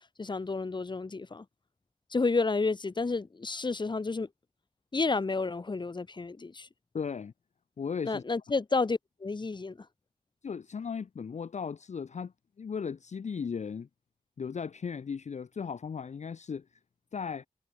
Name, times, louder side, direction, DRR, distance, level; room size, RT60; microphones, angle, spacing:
voice 1, 0.2-1.4 2.1-4.3 4.9-6.7 8.0-9.9, left 3 dB, 30° left, 0.9 m, -30 dB
voice 2, 6.9-7.3 7.8-8.2 10.4-13.9 14.4-16.7 17.1-17.5, left 6 dB, 50° left, 0.6 m, -36 dB
wide cardioid pair, 110°, 15 cm